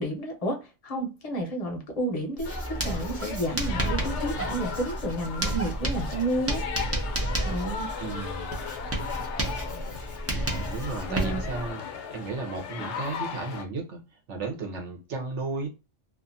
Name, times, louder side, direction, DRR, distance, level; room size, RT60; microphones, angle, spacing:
voice 1, 0.0-2.5 2.8-6.6 7.4-7.9 11.1-11.4 12.8-12.9, right 1 dB, 40° left, 0.7 m, -31 dB
sound 1, 2.4-13.6, left 6 dB, 70° left, 0.9 m, -37 dB
Writing, 2.4-11.7, right 1 dB, 20° right, 0.4 m, -31 dB
voice 2, 8.0-8.6 10.5-11.8 12.1-14.0 14.3-15.7, right 3 dB, 70° right, 1.1 m, -34 dB
2.6 x 2.4 x 2.6 m
omnidirectional pair, 1.3 m